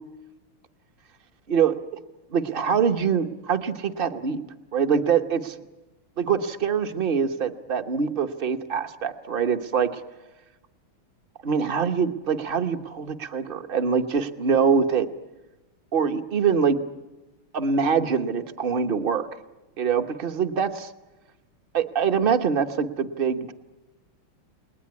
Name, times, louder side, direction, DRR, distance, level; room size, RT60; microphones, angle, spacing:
voice 1, 2.3-4.4 4.7-5.6 6.2-10.0 11.4-15.1 15.9-16.8 17.5-19.3 19.8-20.9 21.7-23.5, right 6 dB, 40° right, 8 dB, 0.8 m, -24 dB
29.0 x 20.5 x 9.6 m, 1.1 s
omnidirectional pair, 2.4 m